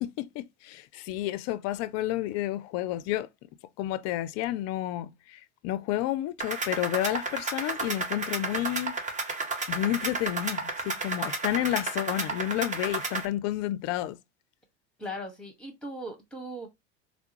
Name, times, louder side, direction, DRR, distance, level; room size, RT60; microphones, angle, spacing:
voice 1, 0.0-3.3 3.8-8.9 9.7-14.2, left 14 dB, 50° left, 0.4 m, -30 dB
sound 1, 6.4-13.2, right 3 dB, 20° right, 0.8 m, -32 dB
voice 2, 15.0-16.7, equal, 5° left, 1.4 m, -38 dB
3.4 x 2.0 x 2.9 m
hypercardioid pair, 85°, 34 cm